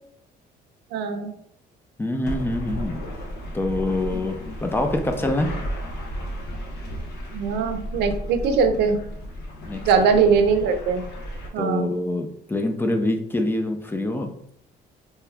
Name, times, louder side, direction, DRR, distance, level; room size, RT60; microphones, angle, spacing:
voice 1, 0.9-1.3 7.3-9.0 9.8-11.0 11.5-11.9, right 5 dB, 85° right, 7 dB, 0.5 m, -21 dB
voice 2, 2.0-3.0 3.5-4.4 4.6-5.5 9.7-9.8 11.6-14.3, left 1 dB, 15° left, 5 dB, 0.4 m, -25 dB
sound 1, 2.2-11.5, equal, 80° left, 0.9 m, -33 dB
2.9 x 2.2 x 3.3 m, 0.69 s
cardioid pair, 110°, 17 cm